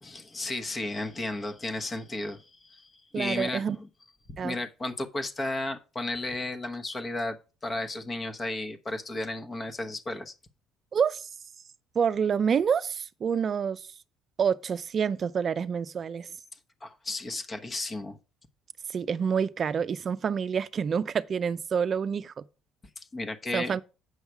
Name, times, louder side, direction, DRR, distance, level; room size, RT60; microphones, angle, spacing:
voice 1, 0.0-3.9 4.3-7.4 7.6-10.3 16.2-16.4 16.8-18.2 23.0-23.8, left 2 dB, 25° left, 1.1 m, -34 dB
voice 2, 3.1-3.8 4.4-4.6 10.9-11.3 11.9-13.9 14.4-16.3 18.9-22.4 23.5-23.8, right 7 dB, 40° right, 0.5 m, -27 dB
8.1 x 5.6 x 4.6 m
cardioid pair, 95°, 0 cm